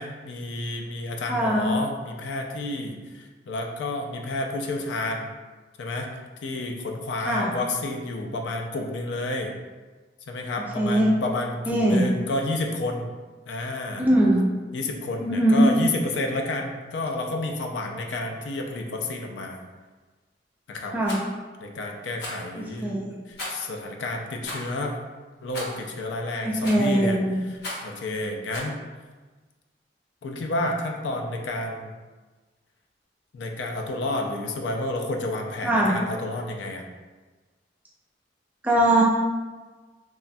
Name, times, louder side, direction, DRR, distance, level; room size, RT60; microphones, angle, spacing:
voice 1, 0.0-5.3 5.8-6.1 6.4-9.5 10.3-13.1 13.5-14.1 14.7-19.6 20.7-20.9 21.6-23.0 23.3-25.0 25.4-27.2 27.8-28.8 30.2-31.9 33.3-36.8, left 2 dB, 85° left, 2 dB, 0.4 m, -30 dB
voice 2, 1.3-1.7 7.2-7.5 10.8-11.1 11.7-12.0 14.0-14.5 15.2-15.7 20.9-21.2 22.6-23.2 26.4-27.4 35.6-35.9 38.6-39.0, right 1 dB, 10° right, -3 dB, 0.4 m, -21 dB
Rattle, 21.0-21.2 22.2-22.5 23.4-23.7 24.4-24.7 25.5-25.8 26.6-26.9 27.6-27.9 28.5-28.7, left 1 dB, 65° left, 0.7 m, -35 dB
3.0 x 2.2 x 2.5 m, 1.3 s
head